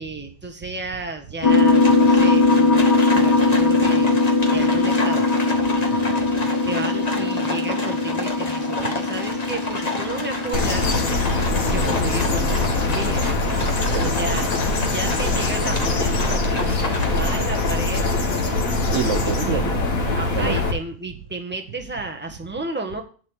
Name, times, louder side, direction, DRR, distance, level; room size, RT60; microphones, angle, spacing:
voice 1, 0.0-4.2 4.5-5.3 6.7-10.9 11.6-13.3 14.0-18.1 19.5-19.7 20.1-23.0, right 3 dB, 5° right, 3 dB, 1.3 m, -32 dB
sound 1, 1.4-13.8, left 3 dB, 90° left, 2.2 m, -21 dB
Livestock farm animals working animals, 1.4-17.8, left 2 dB, 25° left, 1.3 m, -31 dB
voice 2, 5.9-6.2 13.8-14.4 18.9-19.7 20.3-20.6, right 8 dB, 55° right, 7 dB, 1.0 m, -28 dB
sound 2, 10.5-20.7, left 3 dB, 55° left, 1.9 m, -22 dB
11.5 x 4.3 x 8.0 m, 0.40 s
omnidirectional pair, 1.8 m